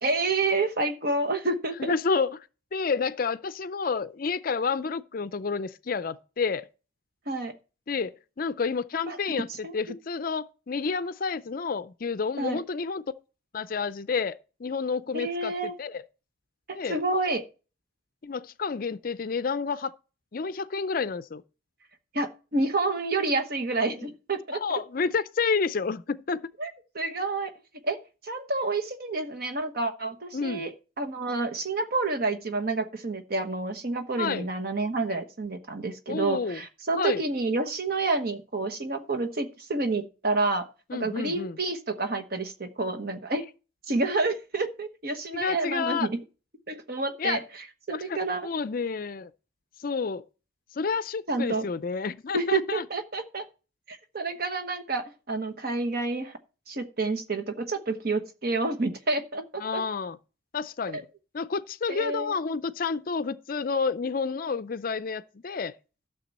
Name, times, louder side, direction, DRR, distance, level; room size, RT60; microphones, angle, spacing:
voice 1, 0.0-1.9 7.3-7.5 9.1-9.2 9.6-10.0 12.4-12.6 15.1-15.7 16.7-17.4 22.1-24.8 26.6-26.7 26.9-27.5 27.8-43.4 43.9-46.2 46.7-47.4 47.9-48.5 51.3-51.7 52.3-53.5 53.9-56.4 56.7-59.8 60.9-61.0 61.9-62.3, right 3 dB, 50° right, 1.1 m, -29 dB
voice 2, 1.8-2.4 2.7-6.7 7.9-13.0 13.5-16.0 16.7-17.0 18.2-19.9 20.3-21.4 24.5-26.5 30.3-30.7 34.2-34.5 36.1-36.6 36.9-37.2 40.9-41.6 45.3-46.1 47.2-47.4 47.9-49.3 49.8-50.2 50.7-52.9 59.6-60.2 60.5-61.1 61.3-65.7, left 5 dB, 45° left, 0.4 m, -30 dB
12.5 x 6.7 x 4.2 m
head